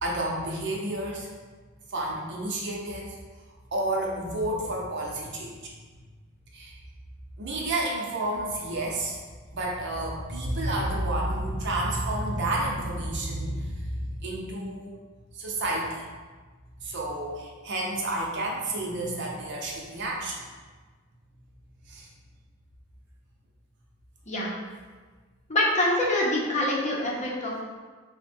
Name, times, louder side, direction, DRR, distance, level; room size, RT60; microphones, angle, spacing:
voice 1, 0.0-1.3 1.9-3.2 3.7-5.7 6.5-6.8 7.4-9.2 9.5-15.0 15.3-16.0 16.8-20.4 21.9-22.1, right 1 dB, 60° right, -2 dB, 0.7 m, -30 dB
voice 2, 25.5-27.6, left 1 dB, 35° left, -4 dB, 0.7 m, -25 dB
3.7 x 2.2 x 4.3 m, 1.4 s
head